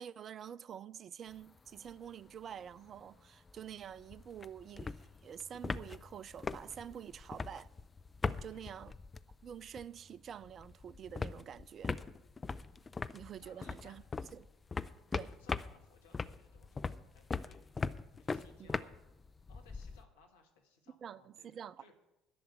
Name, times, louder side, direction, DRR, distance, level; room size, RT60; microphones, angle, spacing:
voice 1, 0.0-7.7 8.4-8.9 9.4-12.0 13.1-14.5 15.1-15.3 18.6-18.7 21.0-21.9, right 9 dB, 40° right, 0.4 m, -48 dB
sound 1, 1.3-2.0 2.3-2.4 2.6-10.0 10.3-20.1, left 4 dB, 25° left, 0.5 m, -41 dB
voice 2, 8.3-8.8 13.4-14.0 15.1-17.6 18.1-19.1 19.5-21.9, left 4 dB, 70° left, 1.8 m, -64 dB
11.5 x 7.1 x 9.1 m
figure-of-eight pair, 55°, 0 cm